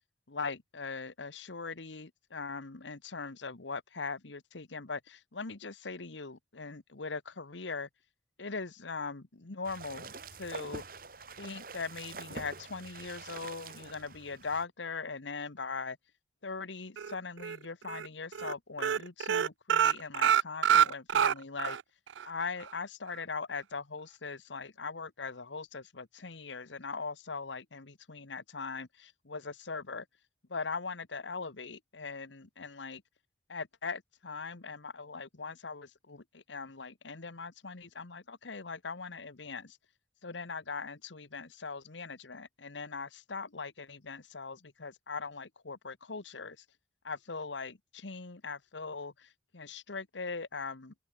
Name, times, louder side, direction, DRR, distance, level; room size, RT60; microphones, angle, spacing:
voice 1, 0.3-7.9 8.4-10.1 10.4-11.0 11.4-16.0 16.4-21.8 22.2-30.0 30.5-33.0 33.5-39.8 40.2-46.6 47.0-50.9, left 4 dB, 85° left, 1.3 m, -40 dB
sound 1, 9.6-14.7, right 4 dB, 50° right, 3.8 m, -46 dB
sound 2, 17.0-17.6 17.9-18.1 18.3-18.5 18.8-21.8 22.2-22.3 22.6-22.7, right 8 dB, 90° right, 0.4 m, -26 dB
open air
head